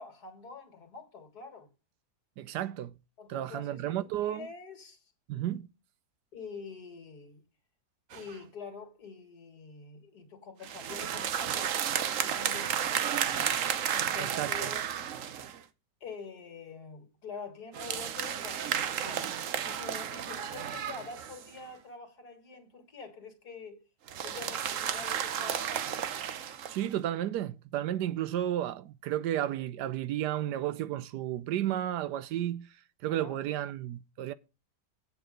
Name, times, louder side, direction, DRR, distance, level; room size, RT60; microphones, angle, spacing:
voice 1, 0.0-1.7 3.2-5.1 6.3-7.5 8.1-13.2 13.9-15.1 16.0-23.8 24.2-25.9 33.1-33.4, left 5 dB, 70° left, 2.5 m, -46 dB
voice 2, 2.4-2.9 3.3-4.5 5.3-5.7 14.2-14.7 26.7-32.7 33.0-34.3, right 12 dB, 85° right, 1.2 m, -32 dB
sound 1, 8.1-8.4 10.6-15.6 17.7-21.6 24.1-26.9, right 9 dB, 60° right, 1.0 m, -33 dB
8.4 x 7.0 x 5.1 m
omnidirectional pair, 1.8 m